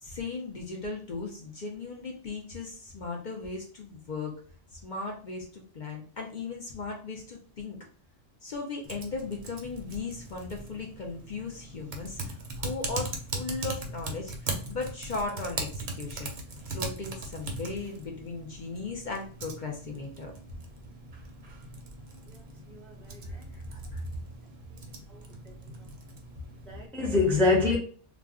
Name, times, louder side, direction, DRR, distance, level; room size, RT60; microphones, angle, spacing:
voice 1, 0.0-4.3 4.7-7.8 8.4-16.3 16.7-20.3 23.2-24.0, left 3 dB, 50° left, 0.6 m, -37 dB
Typing, 8.8-26.9, right 3 dB, 55° right, 0.6 m, -40 dB
voice 2, 22.7-23.2 25.7-25.9 26.7-27.8, left 3 dB, ahead, 0.5 m, -25 dB
2.4 x 2.1 x 3.5 m
omnidirectional pair, 1.2 m